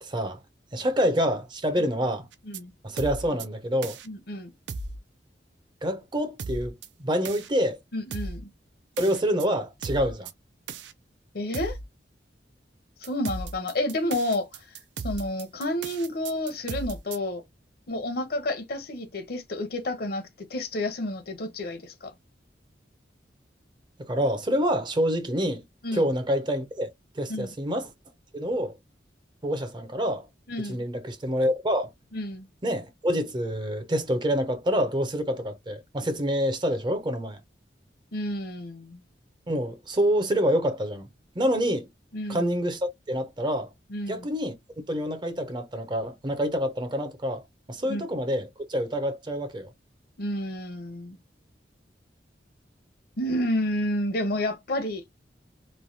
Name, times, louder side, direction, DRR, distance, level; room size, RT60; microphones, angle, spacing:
voice 1, 0.0-0.4 0.7-2.3 2.8-4.0 5.8-7.8 9.0-10.3 24.1-25.6 25.9-27.9 28.3-28.8 29.4-30.3 30.6-31.9 32.6-37.4 39.5-41.1 41.4-41.9 42.3-43.7 44.1-44.5 44.9-47.4 47.7-49.7, equal, 25° right, 0.6 m, -27 dB
sound 1, 2.3-2.6 3.0-3.5 3.8-4.1 4.7-5.0 6.4-6.9 7.2-7.5 8.1-8.4 9.0-9.5 9.8-10.3 10.7-10.9 11.5-11.8 13.0-17.2, right 3 dB, 75° right, 0.4 m, -36 dB
voice 2, 4.1-4.5 7.9-8.5 11.3-11.8 13.0-14.6 15.0-17.4 17.9-22.1 25.8-26.0 27.3-27.5 30.5-30.8 32.1-32.5 38.1-39.0 42.1-42.5 43.9-44.3 47.9-48.1 50.2-51.2 53.2-55.0, left 1 dB, 60° left, 0.7 m, -30 dB
3.1 x 2.2 x 2.6 m
head